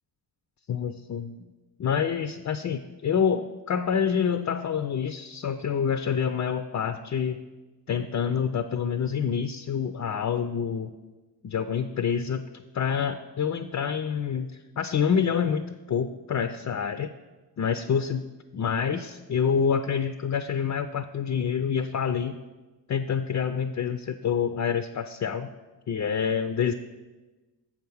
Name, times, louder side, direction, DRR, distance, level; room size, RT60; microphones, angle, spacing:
voice 1, 0.7-1.5 1.8-7.4 7.9-10.9 11.4-14.5 14.8-17.1 17.6-18.2 18.5-22.4 22.9-25.5 25.9-26.7, left 7 dB, 40° left, 9 dB, 0.4 m, -27 dB
7.2 x 4.7 x 7.0 m, 1.2 s
cardioid pair, 70°, 43 cm